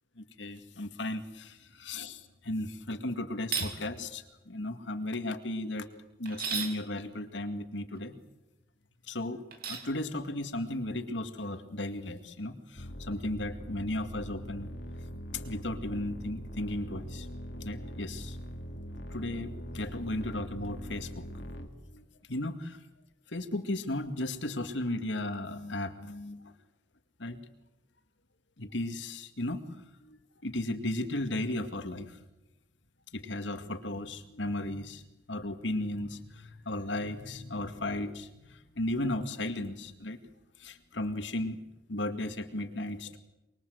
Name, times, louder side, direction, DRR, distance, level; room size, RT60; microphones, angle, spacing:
voice 1, 0.2-5.9 6.2-8.1 9.1-9.4 9.7-14.7 15.3-17.3 17.6-18.4 19.1-21.2 21.9-22.0 22.3-22.8 23.3-26.4 27.2-27.4 28.6-30.2 30.4-32.1 33.1-35.0 35.3-40.2 40.6-41.6 41.9-43.2, left 1 dB, 85° left, 8 dB, 2.2 m, -35 dB
Fork Onto Table, 3.4-3.7 6.3-6.8 9.5-9.9, right 6 dB, 55° right, 3.2 m, -33 dB
sound 1, 12.8-21.7, equal, 65° left, 2.7 m, -42 dB
24.5 x 23.0 x 7.9 m, 0.98 s
head